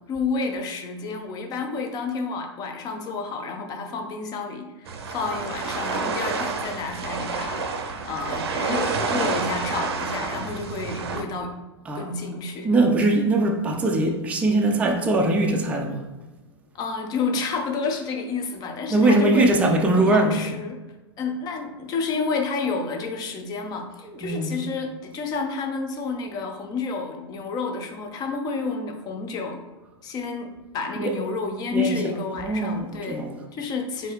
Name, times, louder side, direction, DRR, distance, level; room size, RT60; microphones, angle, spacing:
voice 1, 0.1-7.6 8.0-11.5 11.9-12.7 16.7-19.5 20.0-20.8 21.2-29.6 30.0-33.2 33.5-34.1, left 4 dB, 25° left, 0.6 m, -30 dB
sound 1, 4.9-11.2, right 4 dB, 60° right, 0.6 m, -29 dB
voice 2, 12.6-16.0 18.9-20.4 24.0-24.6 31.0-31.1 31.7-32.0 32.4-33.4, right 2 dB, 10° right, 0.4 m, -21 dB
4.5 x 2.8 x 3.1 m
figure-of-eight pair, 100°, 15 cm